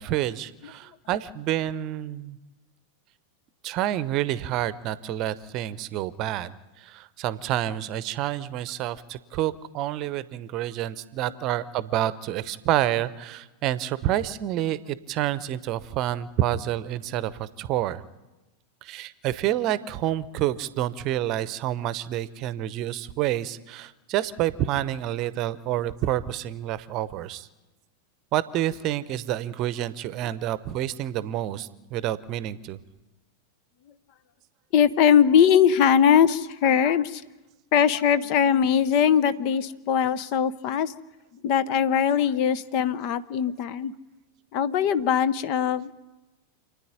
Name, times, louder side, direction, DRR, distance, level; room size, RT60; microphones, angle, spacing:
voice 1, 0.0-2.4 3.6-18.0 18.8-27.5 28.3-32.8, right 12 dB, 40° right, 17 dB, 0.8 m, -28 dB
voice 2, 34.7-37.2 37.7-40.9 41.4-43.9 44.5-45.9, left 8 dB, 45° left, 16 dB, 0.8 m, -21 dB
28.5 x 9.8 x 9.9 m, 1.1 s
figure-of-eight pair, 90°, 0 cm